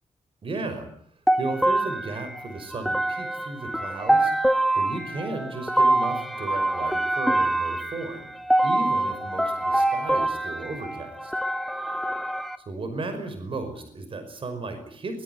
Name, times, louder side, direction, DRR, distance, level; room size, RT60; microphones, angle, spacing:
voice 1, 0.4-0.9 1.4-8.4 8.6-11.3 12.7-15.2, right 2 dB, 40° right, 8 dB, 5.6 m, -35 dB
sound 1, 1.3-12.6, right 1 dB, ahead, 1.6 m, -25 dB
22.5 x 21.5 x 9.5 m, 0.63 s
wide cardioid pair, 165°, 13 cm